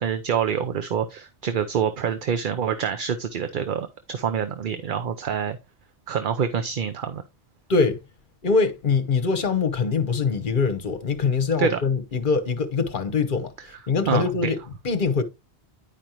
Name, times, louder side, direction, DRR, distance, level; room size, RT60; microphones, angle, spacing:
voice 1, 0.0-5.6 6.1-7.2 11.6-11.8 14.1-14.5, right 7 dB, 55° right, 0.8 m, -26 dB
voice 2, 8.4-14.6 14.8-15.2, left 4 dB, 50° left, 1.0 m, -23 dB
9.9 x 5.2 x 3.0 m
omnidirectional pair, 1.1 m